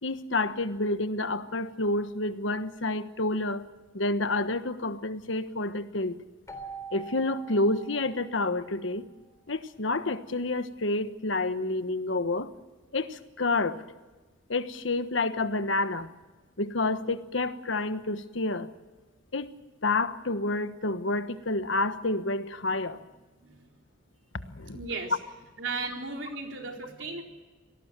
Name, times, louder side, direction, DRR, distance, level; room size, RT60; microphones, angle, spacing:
voice 1, 0.0-3.6 3.9-6.2 6.9-9.0 9.5-12.5 12.9-13.8 14.5-16.1 16.6-18.7 19.3-19.5 19.8-23.0 24.4-24.8, left 2 dB, 75° left, 11 dB, 1.3 m, -29 dB
Keyboard (musical), 6.5-9.1, right 5 dB, 15° left, 3.6 m, -44 dB
voice 2, 23.4-23.7 24.7-25.2 25.6-27.2, right 4 dB, 75° right, 2 dB, 4.1 m, -35 dB
26.0 x 18.5 x 7.6 m, 1.3 s
head